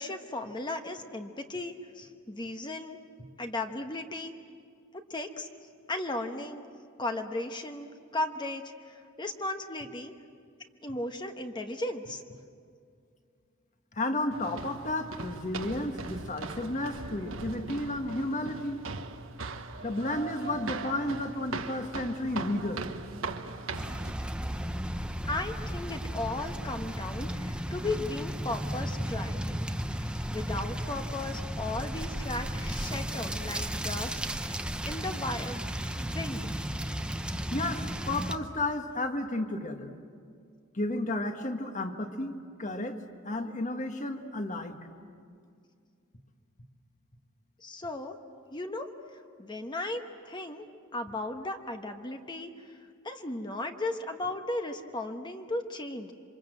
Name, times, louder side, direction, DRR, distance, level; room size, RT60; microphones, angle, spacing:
voice 1, 0.0-3.0 3.4-4.3 5.1-5.5 5.9-6.7 7.0-10.1 10.8-12.2 20.5-20.6 25.2-34.6 34.9-35.7 36.0-36.5 47.6-48.2 48.5-48.9 49.4-50.7 50.9-52.8 53.0-56.1, left 2 dB, 25° left, 5 dB, 1.1 m, -36 dB
voice 2, 13.9-18.8 19.8-22.8 37.5-39.9 40.7-43.0 43.2-44.8, left 1 dB, 40° left, 6 dB, 1.6 m, -32 dB
sound 1, 14.3-24.1, right 3 dB, 75° right, 1.3 m, -39 dB
sound 2, 23.7-38.4, equal, 5° right, 0.8 m, -34 dB
27.5 x 25.5 x 7.7 m, 2.3 s
head